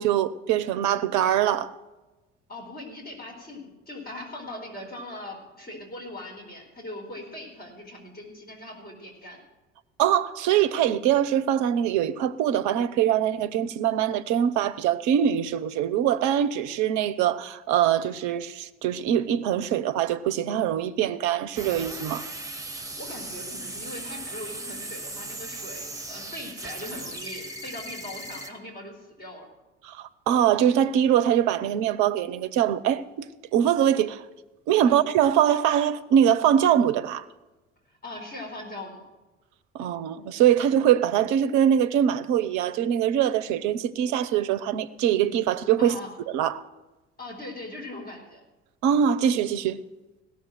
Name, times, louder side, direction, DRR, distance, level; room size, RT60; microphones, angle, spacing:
voice 1, 0.0-1.7 10.0-22.2 29.8-33.3 33.5-34.2 34.7-37.2 39.7-46.0 46.3-46.6 48.8-49.8, right 10 dB, 55° right, 0.8 m, -23 dB
voice 2, 2.5-9.4 23.0-29.5 34.8-35.0 37.9-39.0 45.8-46.1 47.2-48.4, left 1 dB, 25° left, 4.3 m, -40 dB
sound 1, 21.5-28.5, right 2 dB, 10° right, 1.7 m, -37 dB
16.5 x 7.0 x 7.7 m
figure-of-eight pair, 55°, 36 cm